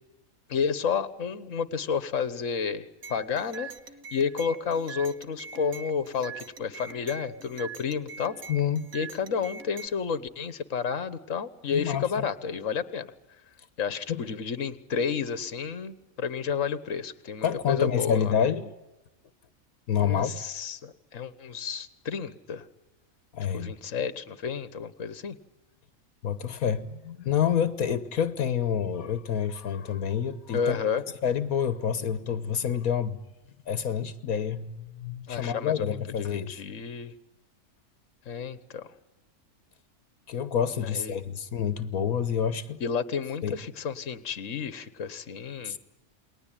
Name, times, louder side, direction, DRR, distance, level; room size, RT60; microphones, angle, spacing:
voice 1, 0.5-3.7 4.1-8.4 8.9-13.1 13.8-18.3 20.0-22.7 23.5-25.4 30.5-31.0 35.3-37.1 38.2-38.9 40.8-41.2 42.8-45.8, left 6 dB, 65° left, 1.7 m, -31 dB
sound 1, 3.0-9.9, right 5 dB, 90° right, 1.9 m, -43 dB
voice 2, 8.5-8.9 11.7-12.2 14.1-14.2 17.4-18.7 19.9-20.3 23.3-23.8 26.2-30.8 31.2-33.2 33.7-36.6 40.3-42.8 43.4-43.6 45.6-45.8, left 8 dB, 85° left, 1.6 m, -28 dB
29.0 x 21.0 x 9.0 m
omnidirectional pair, 1.5 m